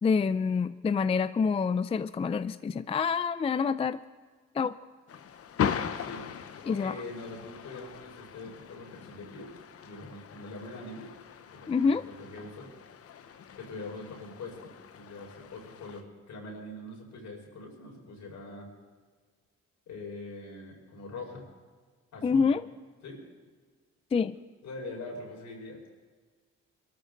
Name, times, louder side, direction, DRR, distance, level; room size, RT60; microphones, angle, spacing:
voice 1, 0.0-4.0 4.6-4.7 6.7-6.9 11.7-12.1 22.2-22.6 24.1-24.4, left 5 dB, 20° left, 14 dB, 0.4 m, -27 dB
sound 1, 5.1-16.0, left 8 dB, 50° left, 0.9 m, -39 dB
voice 2, 6.6-9.5 9.8-11.1 11.5-12.7 13.6-18.7 19.9-21.4 22.1-22.5 23.0-23.2 24.6-25.8, left 2 dB, 70° left, -1 dB, 5.1 m, -43 dB
22.5 x 14.0 x 3.9 m, 1.5 s
cardioid pair, 90°, 30 cm